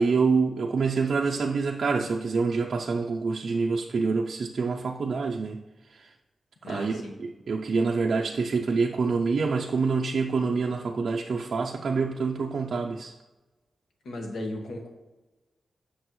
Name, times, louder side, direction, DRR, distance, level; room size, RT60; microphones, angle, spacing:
voice 1, 0.0-5.6 5.9-6.1 6.6-13.1, right 4 dB, 50° right, 1 dB, 0.4 m, -26 dB
voice 2, 6.6-7.2 14.0-14.9, left 1 dB, 80° left, 2 dB, 1.3 m, -35 dB
8.0 x 6.2 x 3.1 m, 1.1 s
wide cardioid pair, 180°, 0 cm